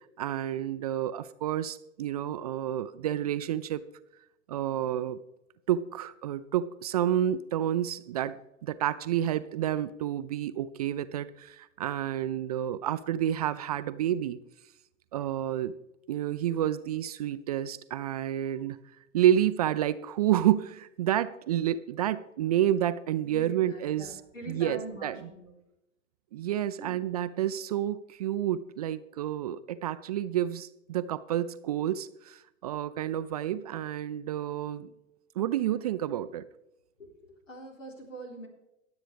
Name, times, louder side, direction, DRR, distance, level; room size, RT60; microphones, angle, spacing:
voice 1, 0.2-3.8 4.5-5.2 5.7-14.4 15.1-15.8 16.1-18.8 19.1-24.1 24.5-25.2 26.3-34.9 35.4-36.4, right 11 dB, 35° right, 13 dB, 0.4 m, -29 dB
voice 2, 23.3-25.5 26.8-27.0 37.0-38.5, right 1 dB, 80° left, 2 dB, 3.9 m, -43 dB
22.0 x 8.1 x 3.4 m, 0.91 s
figure-of-eight pair, 105°, 38 cm